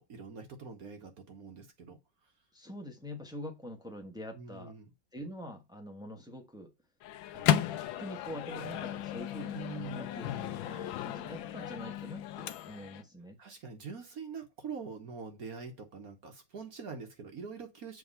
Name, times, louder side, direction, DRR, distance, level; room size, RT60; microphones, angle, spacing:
voice 1, 0.0-2.0 4.3-4.9 9.5-10.1 13.4-18.0, right 5 dB, 55° right, 1.4 m, -44 dB
voice 2, 2.5-4.7 5.1-6.7 7.3-9.6 9.9-13.4, equal, 5° right, 0.9 m, -45 dB
Microwave oven, 7.0-13.0, left 11 dB, 85° left, 1.4 m, -34 dB
7.6 x 3.5 x 5.4 m
omnidirectional pair, 2.1 m